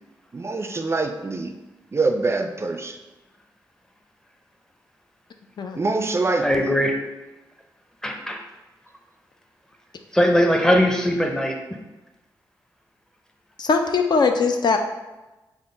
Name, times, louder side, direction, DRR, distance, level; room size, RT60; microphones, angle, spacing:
voice 1, 0.3-1.5 1.9-3.0 5.8-6.7, right 3 dB, 30° right, 6 dB, 0.3 m, -24 dB
voice 2, 6.4-7.0 8.0-8.4 10.1-11.6, equal, 5° left, 2 dB, 0.6 m, -20 dB
voice 3, 13.6-14.8, left 4 dB, 60° left, 5 dB, 0.4 m, -20 dB
3.7 x 2.0 x 3.8 m, 1.1 s
cardioid pair, 45°, 8 cm